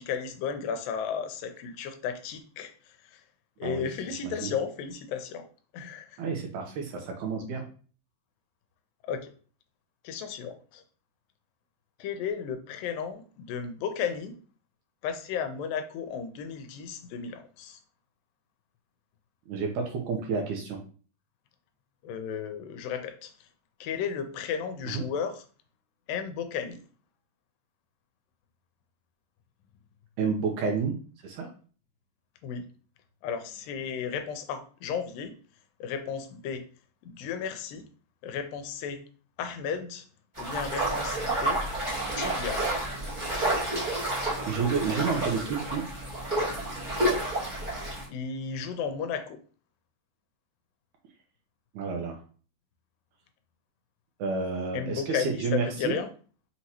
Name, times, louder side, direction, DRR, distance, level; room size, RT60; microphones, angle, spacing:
voice 1, 0.0-2.7 3.1-3.2 3.6-5.5 5.7-6.2 9.0-9.3 10.0-10.8 12.0-14.4 15.0-17.8 22.0-23.3 23.8-25.4 26.1-26.8 32.4-32.7 33.2-35.3 35.8-36.7 37.0-37.9 38.2-39.0 39.4-40.1 40.4-41.6 42.2-42.7 48.1-49.4 54.7-56.1, left 7 dB, 85° left, 8 dB, 2.3 m, -34 dB
voice 2, 6.2-7.6 19.5-20.8 24.9-25.0 30.2-31.0 31.2-31.5 44.5-45.8 51.7-52.2 54.2-56.0, right 5 dB, 80° right, 1 dB, 1.9 m, -30 dB
sound 1, 40.3-48.0, right 1 dB, 30° right, 0.9 m, -30 dB
5.8 x 2.9 x 2.8 m, 0.40 s
omnidirectional pair, 3.9 m